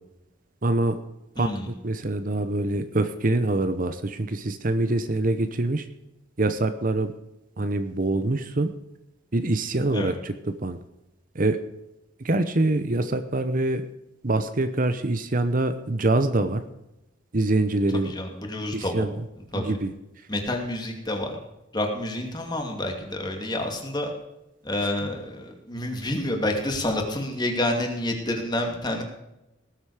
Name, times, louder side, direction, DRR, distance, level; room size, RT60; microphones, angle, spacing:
voice 1, 0.6-1.0 1.4-5.8 6.4-7.1 7.6-8.7 9.3-10.8 11.3-11.6 12.2-13.8 14.2-16.6 17.3-18.1 18.7-19.1 19.5-19.9, right 2 dB, 45° right, 10 dB, 0.8 m, -25 dB
voice 2, 1.4-1.7 9.9-10.1 17.9-19.1 19.5-19.8 20.3-21.4 21.7-24.1 24.6-29.0, left 1 dB, 20° left, 3 dB, 2.5 m, -28 dB
19.0 x 8.1 x 4.9 m, 0.91 s
head